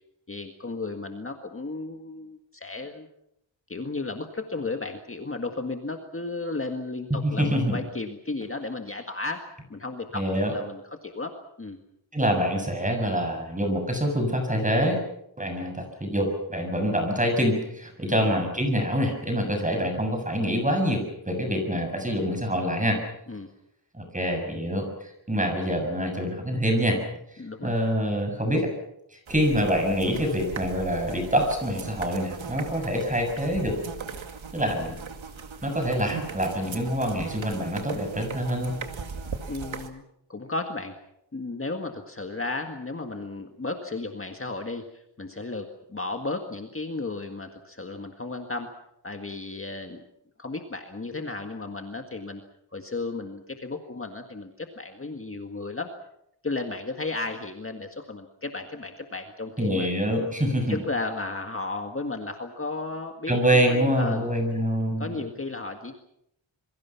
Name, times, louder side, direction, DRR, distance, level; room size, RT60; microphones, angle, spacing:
voice 1, 0.3-3.1 3.7-11.3 11.6-11.8 18.1-18.3 23.3-23.5 27.4-27.7 39.5-40.0 40.3-40.9 41.3-48.7 49.0-50.0 50.4-52.4 52.7-55.9 56.4-59.9 60.7-64.3 65.0-65.9, left 3 dB, 30° left, 4 dB, 1.8 m, -34 dB
voice 2, 7.2-7.8 10.1-10.5 12.1-15.0 15.4-23.0 23.9-27.0 27.3-28.7 29.1-33.8 34.5-35.0 35.6-38.8 59.6-60.8 63.3-65.2, equal, 15° right, 4 dB, 7.1 m, -26 dB
sound 1, 29.3-39.9, right 5 dB, 90° right, 2.4 m, -38 dB
27.0 x 23.0 x 5.9 m, 0.78 s
wide cardioid pair, 135°, 46 cm